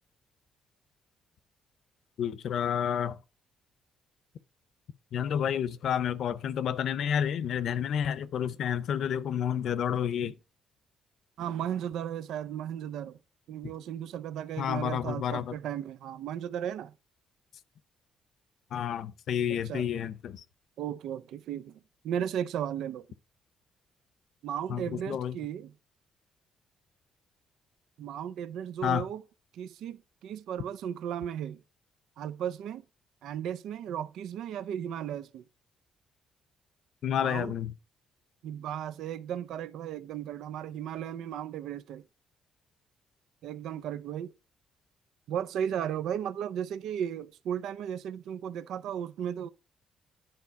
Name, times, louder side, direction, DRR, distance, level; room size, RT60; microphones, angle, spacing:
voice 1, 2.2-3.2 5.1-10.4 14.6-15.5 18.7-20.4 24.7-25.4 28.8-29.1 37.0-37.7, left 9 dB, 70° left, 0.7 m, -30 dB
voice 2, 11.4-13.2 13.5-16.9 19.5-19.8 20.8-21.8 22.0-23.1 24.4-25.7 28.0-29.2 29.5-31.6 32.2-32.8 33.2-35.4 37.2-37.5 38.4-42.0 43.4-44.3 45.3-49.5, right 9 dB, 80° right, 0.5 m, -35 dB
10.5 x 4.3 x 5.7 m
cardioid pair, 90°, 0 cm